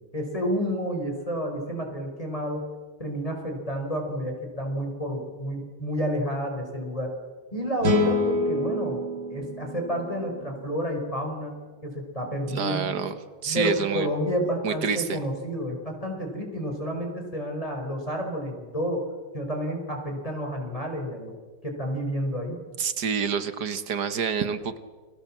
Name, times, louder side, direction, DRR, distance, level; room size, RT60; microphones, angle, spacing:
voice 1, 0.1-2.7 3.0-7.1 7.5-9.0 9.3-13.0 13.5-19.1 19.3-21.3 21.6-22.6, equal, 20° left, 2 dB, 4.9 m, -30 dB
sound 1, 7.8-11.1, left 1 dB, 85° right, 3.9 m, -28 dB
voice 2, 12.5-13.2 13.4-14.1 14.6-15.2 22.8-24.8, right 6 dB, 65° right, 11 dB, 1.9 m, -27 dB
30.0 x 23.0 x 7.5 m, 1.4 s
omnidirectional pair, 2.0 m